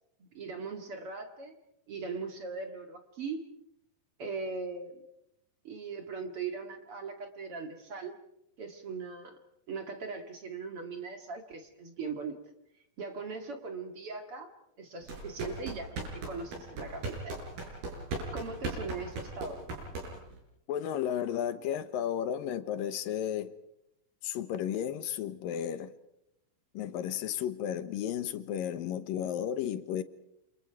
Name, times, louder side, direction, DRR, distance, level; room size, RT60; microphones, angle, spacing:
voice 1, 0.2-1.6 1.9-3.5 4.2-5.0 5.6-8.2 8.6-9.4 9.7-12.4 13.0-14.5 14.8-17.4 18.3-19.6, right 4 dB, 45° right, 2.6 m, -39 dB
sound 1, 15.0-20.4, right 2 dB, 85° right, 8.4 m, -38 dB
voice 2, 20.7-23.5 24.2-25.9 26.7-30.0, left 10 dB, 75° left, 2.7 m, -33 dB
29.5 x 27.5 x 4.7 m
omnidirectional pair, 4.2 m